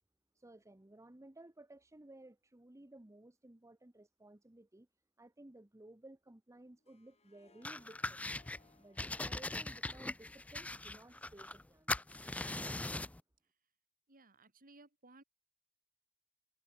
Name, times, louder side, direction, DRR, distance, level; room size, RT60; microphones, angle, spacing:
voice 1, 0.3-4.9 5.2-8.2 8.8-12.0, right 1 dB, 15° right, 0.8 m, -57 dB
Harp, 6.6-11.9, left 3 dB, 30° left, 3.0 m, -71 dB
sound 1, 7.6-8.6 9.0-11.6 11.9-13.2, left 2 dB, 5° left, 0.3 m, -40 dB
voice 2, 14.1-15.2, right 2 dB, 40° right, 3.8 m, -60 dB
head